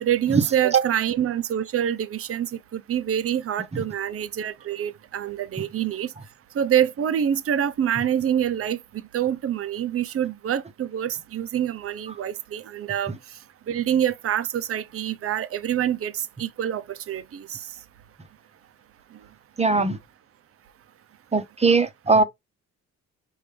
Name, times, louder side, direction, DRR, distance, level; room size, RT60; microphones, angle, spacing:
voice 1, 0.0-6.1 6.5-8.8 9.1-13.1 13.7-17.6, right 10 dB, 50° right, 0.7 m, -26 dB
voice 2, 19.6-20.0 21.3-22.2, right 4 dB, 20° right, 0.9 m, -20 dB
5.3 x 2.6 x 3.3 m
cardioid pair, 90°, 30 cm